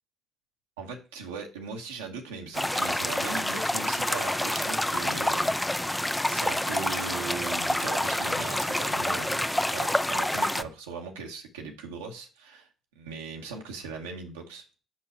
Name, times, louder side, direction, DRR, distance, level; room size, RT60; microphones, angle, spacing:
voice 1, 0.8-5.5 6.2-12.7 13.0-14.6, right 5 dB, 80° right, 2 dB, 0.9 m, -39 dB
sound 1, 2.5-10.6, left 1 dB, 10° left, 0.5 m, -28 dB
5.7 x 5.5 x 4.4 m, 0.34 s
figure-of-eight pair, 45°, 0 cm